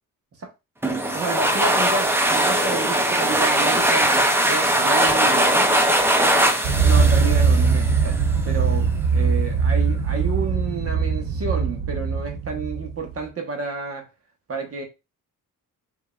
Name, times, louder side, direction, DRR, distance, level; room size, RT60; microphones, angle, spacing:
sound 1, 0.8-8.3, right 1 dB, 5° right, 0.4 m, -20 dB
voice 1, 1.1-5.8 6.8-14.1 14.5-14.8, right 4 dB, 40° right, 1.1 m, -30 dB
sound 2, 6.6-13.1, right 5 dB, 65° right, 0.9 m, -21 dB
5.0 x 2.8 x 2.3 m
cardioid pair, 135°, 36 cm